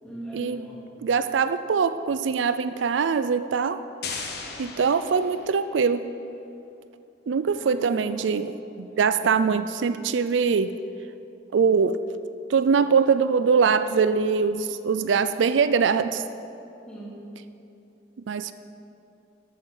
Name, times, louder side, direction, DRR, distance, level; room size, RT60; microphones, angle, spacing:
voice 1, 0.0-1.4 4.5-4.7 7.5-8.3 8.9-9.0 16.9-17.2, right 1 dB, 5° left, -6 dB, 2.8 m, -41 dB
voice 2, 1.0-3.8 4.6-6.0 7.3-10.7 11.5-12.0 12.5-16.2 18.3-18.5, right 5 dB, 75° right, 12 dB, 0.4 m, -23 dB
sound 1, 4.0-5.8, left 5 dB, 60° left, 1.4 m, -37 dB
12.5 x 8.4 x 6.4 m, 2.7 s
head